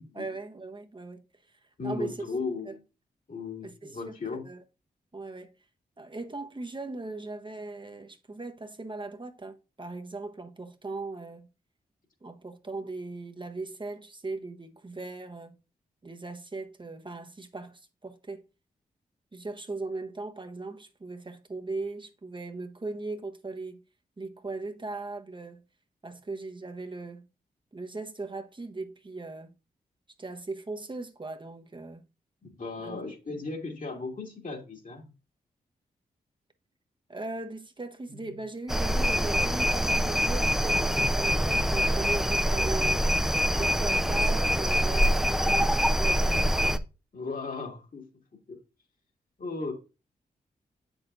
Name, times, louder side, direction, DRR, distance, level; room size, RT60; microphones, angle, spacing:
voice 1, 0.1-2.2 2.6-2.8 3.6-4.1 4.4-4.6 5.1-5.5 6.0-11.5 12.2-15.6 16.0-18.4 19.3-23.8 24.2-25.6 26.0-27.3 27.7-29.5 30.2-32.0 32.8-33.0 37.1-43.0 43.5-46.2, right 3 dB, 30° right, 0.9 m, -39 dB
voice 2, 1.8-2.8 3.3-4.4 32.4-35.1 38.1-38.3 47.1-48.1 48.5-48.6 49.4-49.7, left 3 dB, 55° left, 2.1 m, -36 dB
sound 1, 38.7-46.8, equal, ahead, 0.6 m, -25 dB
7.5 x 6.3 x 2.5 m
supercardioid pair, 40°, 17 cm